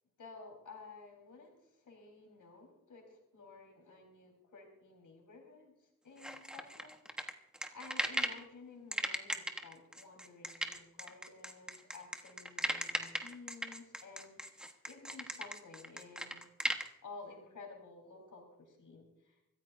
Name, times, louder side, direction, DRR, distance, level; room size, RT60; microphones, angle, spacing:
voice 1, 0.2-7.0 7.7-16.4 17.0-19.4, left 4 dB, 75° left, 0 dB, 4.3 m, -53 dB
sound 1, 6.2-8.4 8.9-16.9, equal, 5° right, 1.4 m, -37 dB
25.0 x 14.5 x 2.6 m, 0.89 s
wide cardioid pair, 100°, 31 cm